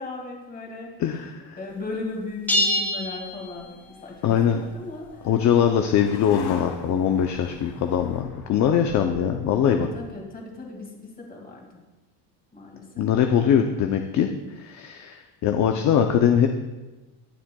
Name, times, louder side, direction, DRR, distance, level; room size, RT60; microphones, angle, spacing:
voice 1, 0.0-1.3 1.6-3.7 4.0-5.3 9.7-11.8 12.5-13.1, left 3 dB, 20° left, 0 dB, 2.1 m, -37 dB
voice 2, 1.0-1.6 4.2-4.6 5.2-9.9 13.0-14.3 14.5-16.5, left 8 dB, 40° left, 5 dB, 0.6 m, -22 dB
sound 1, 2.5-4.1, left 1 dB, 5° left, 1.1 m, -25 dB
sound 2, 3.0-10.4, left 4 dB, 85° left, 2.5 m, -43 dB
22.0 x 7.4 x 2.3 m, 1.2 s
cardioid pair, 150°, 45 cm